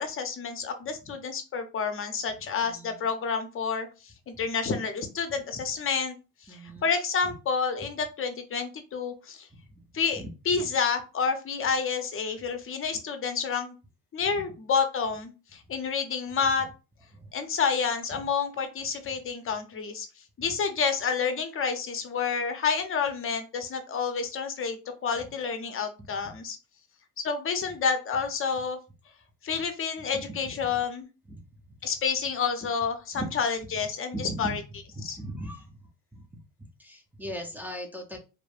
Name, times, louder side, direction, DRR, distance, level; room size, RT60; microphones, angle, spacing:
voice 1, 0.0-6.2 6.5-9.5 9.9-13.8 14.1-16.7 17.3-20.1 20.4-26.6 27.2-28.8 29.4-31.1 31.8-34.6 35.0-35.2, left 5 dB, 35° left, 7 dB, 0.7 m, -29 dB
voice 2, 2.6-3.1 4.3-4.4 5.5-5.6 6.5-6.9 9.5-9.9 10.2-10.6 17.1-17.3 26.0-26.1 29.5-29.6 30.1-30.7 31.3-31.4 33.1-33.3 34.1-34.6 35.0-35.8 36.1-36.2 36.6-38.2, right 1 dB, 5° right, 0 dB, 0.6 m, -39 dB
3.1 x 2.0 x 2.4 m, 0.32 s
supercardioid pair, 75°, 38 cm